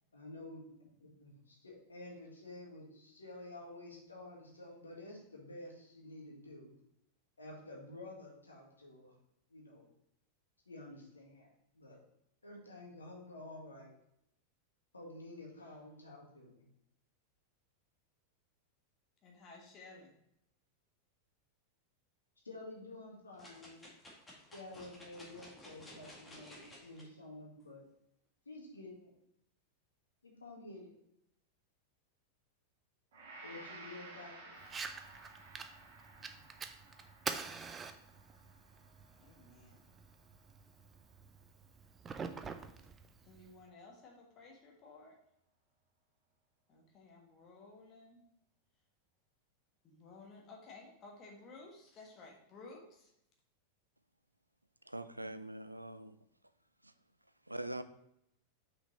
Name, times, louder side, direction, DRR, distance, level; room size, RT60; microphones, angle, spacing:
voice 1, 0.1-6.7 7.4-9.2 9.5-9.9 10.6-11.5 11.7-12.0 12.4-13.9 14.9-16.7 22.4-23.9 24.5-27.8 28.4-29.1 30.2-30.9 33.4-34.6, left 2 dB, 75° left, -1 dB, 1.8 m, -50 dB
voice 2, 19.2-20.1 36.1-36.6 39.2-39.9 43.2-45.1 46.7-48.2 49.8-53.1, left 3 dB, 30° left, -1 dB, 1.4 m, -55 dB
sound 1, 23.4-27.0 27.6-27.7, left 1 dB, 10° left, 1.9 m, -55 dB
Gong, 33.1-41.4 41.9-42.0, right 2 dB, 55° right, 2.0 m, -56 dB
Fire, 34.6-43.6, right 5 dB, 20° right, 0.5 m, -46 dB
voice 3, 54.9-56.2 56.8-56.9 57.5-57.8, right 1 dB, 85° right, 12 dB, 0.4 m, -43 dB
5.9 x 5.3 x 4.1 m, 0.79 s
figure-of-eight pair, 90°, 0 cm